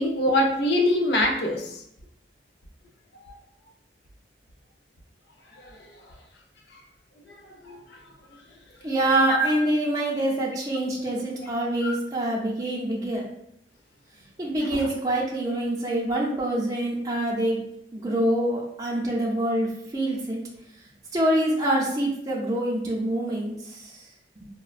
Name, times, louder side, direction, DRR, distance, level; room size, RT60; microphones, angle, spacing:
voice 1, 0.0-1.6 7.6-7.8 9.3-9.5 11.8-11.9 14.7-14.8, left 1 dB, 70° left, 2 dB, 0.5 m, -23 dB
voice 2, 8.8-13.2 14.4-17.6 17.9-20.4 21.1-23.8, right 1 dB, 20° right, -4 dB, 0.5 m, -25 dB
4.2 x 2.1 x 2.4 m, 0.77 s
head